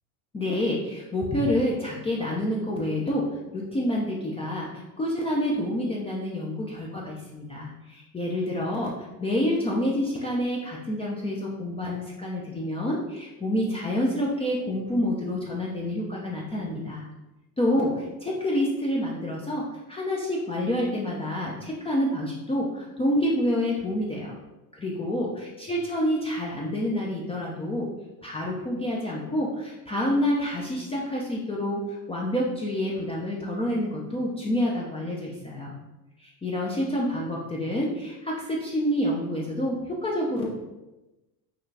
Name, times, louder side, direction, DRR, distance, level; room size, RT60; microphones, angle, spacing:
voice 1, 0.3-3.3 3.5-17.1 17.6-24.4 24.7-27.9 28.2-35.7 36.2-40.5, left 1 dB, 15° left, -4 dB, 0.6 m, -28 dB
5.7 x 2.4 x 3.3 m, 1.0 s
supercardioid pair, 105°, 45 cm